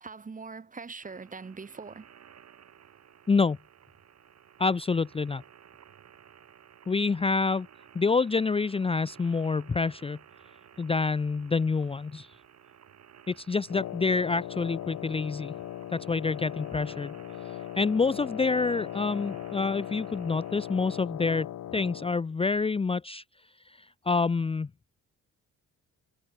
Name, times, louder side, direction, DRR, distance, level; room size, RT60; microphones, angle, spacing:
voice 1, 0.0-2.1, right 4 dB, 25° right, 1.7 m, -42 dB
sound 1, 1.0-21.0, right 9 dB, 60° right, 6.0 m, -55 dB
voice 2, 3.3-3.6 4.6-5.4 6.9-7.7 7.9-10.2 10.8-12.3 13.3-15.5 15.9-17.1 17.8-21.5 21.7-23.2 23.7-24.7, left 4 dB, 20° left, 0.6 m, -27 dB
Wind instrument woodwind instrument, 13.7-22.2, left 12 dB, 75° left, 3.2 m, -39 dB
cardioid pair, 90°, 30 cm